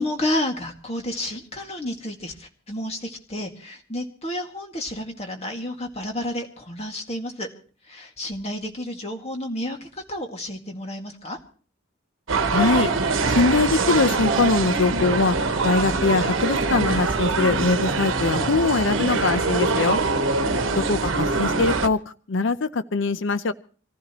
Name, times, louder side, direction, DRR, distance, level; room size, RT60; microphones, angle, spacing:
voice 1, 0.0-7.5 7.9-11.4 20.4-20.8, left 1 dB, 30° left, 3 dB, 2.0 m, -31 dB
sound 1, 12.3-21.9, right 3 dB, 80° right, 1.0 m, -23 dB
voice 2, 12.5-12.9 13.3-15.4 15.6-20.0 20.8-22.0 22.3-23.5, left 3 dB, 70° left, 12 dB, 0.6 m, -22 dB
26.0 x 15.5 x 3.0 m, 0.40 s
head